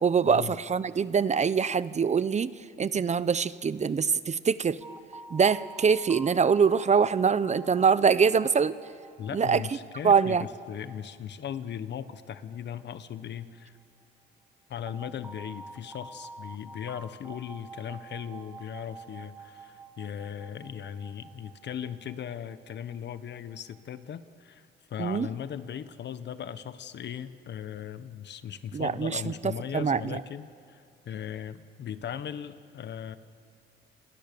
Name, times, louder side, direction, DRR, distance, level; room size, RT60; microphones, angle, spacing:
voice 1, 0.0-2.5 2.8-4.8 5.3-8.8 9.3-9.6 10.0-10.5 25.0-25.3 28.7-29.3 29.7-30.2, right 6 dB, 35° right, 16 dB, 0.8 m, -24 dB
sound 1, 4.8-13.6 14.9-24.0, right 3 dB, 10° right, 1.9 m, -48 dB
voice 2, 9.2-13.8 14.7-33.2, left 9 dB, 60° left, 12 dB, 1.3 m, -38 dB
29.5 x 28.0 x 7.0 m, 2.3 s
cardioid pair, 90°, 20 cm